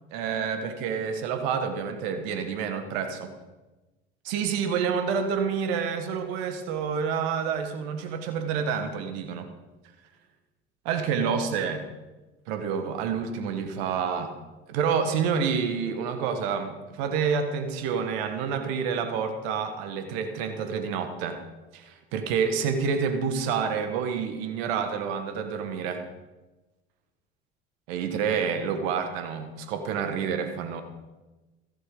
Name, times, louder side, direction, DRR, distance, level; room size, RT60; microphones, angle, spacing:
voice 1, 0.1-3.3 4.2-9.5 10.8-11.8 12.5-14.3 14.7-21.4 21.7-26.0 27.9-30.8, right 6 dB, 75° right, 7 dB, 1.5 m, -28 dB
14.5 x 11.0 x 4.9 m, 1.1 s
hypercardioid pair, 65°, 31 cm